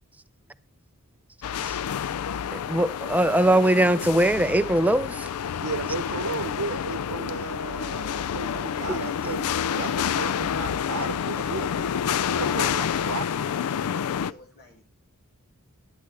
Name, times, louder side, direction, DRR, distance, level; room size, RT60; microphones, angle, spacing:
sound 1, 1.4-14.3, left 8 dB, 85° left, 0.4 m, -28 dB
voice 1, 2.5-5.3 8.9-9.0, right 1 dB, 5° right, 0.4 m, -21 dB
voice 2, 5.6-9.5 9.8-13.3, right 4 dB, 80° right, 0.8 m, -34 dB
voice 3, 12.1-14.8, left 3 dB, 45° left, 2.3 m, -49 dB
11.5 x 10.5 x 3.3 m
head